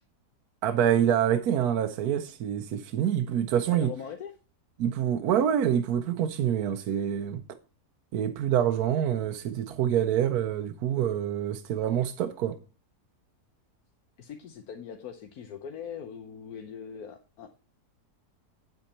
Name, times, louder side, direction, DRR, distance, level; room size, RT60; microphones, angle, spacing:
voice 1, 0.6-3.9 4.8-7.4 8.1-12.6, right 9 dB, 75° right, 1.2 m, -26 dB
voice 2, 3.7-4.3 14.2-17.5, left 7 dB, 70° left, 1.4 m, -41 dB
8.8 x 8.0 x 4.2 m
omnidirectional pair, 1.7 m